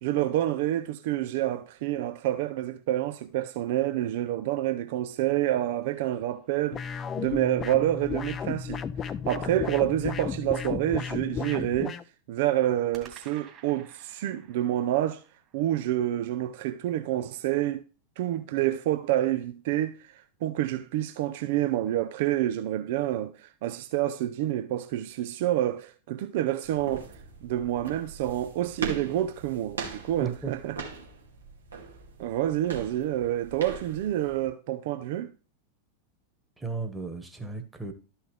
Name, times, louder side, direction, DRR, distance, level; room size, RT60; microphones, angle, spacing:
voice 1, 0.0-12.0 12.3-15.2 15.5-17.8 18.2-20.0 20.4-27.1 27.4-30.8 32.2-35.3, right 13 dB, 50° right, 0.6 m, -28 dB
sound 1, 5.7-7.1 12.9-17.2, right 7 dB, 30° right, 2.6 m, -56 dB
sound 2, 6.7-12.0, left 6 dB, 25° left, 0.5 m, -33 dB
sound 3, 26.6-34.5, right 5 dB, 70° right, 2.4 m, -40 dB
voice 2, 30.2-30.5 36.6-37.9, right 5 dB, 5° right, 1.6 m, -34 dB
13.0 x 5.7 x 3.3 m
figure-of-eight pair, 90°, 0 cm